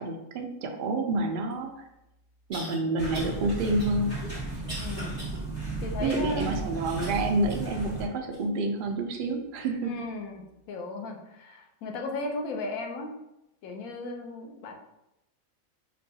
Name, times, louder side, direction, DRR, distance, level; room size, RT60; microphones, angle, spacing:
voice 1, 0.0-1.9 2.5-4.2 6.0-9.9, right 2 dB, 70° right, 3 dB, 0.5 m, -28 dB
sound 1, 1.5-1.6 2.5-2.8 3.1-3.4 3.8-5.4 5.9-6.0 7.0-7.7 8.3-8.4 9.2-9.3, equal, 25° right, 1.0 m, -42 dB
sound 2, 3.0-8.1, right 3 dB, 10° left, 1.2 m, -34 dB
voice 2, 4.8-5.2 5.8-6.5 9.8-13.1 13.6-14.7, left 2 dB, 85° left, 2 dB, 1.1 m, -35 dB
5.2 x 2.3 x 2.7 m, 0.88 s
omnidirectional pair, 1.4 m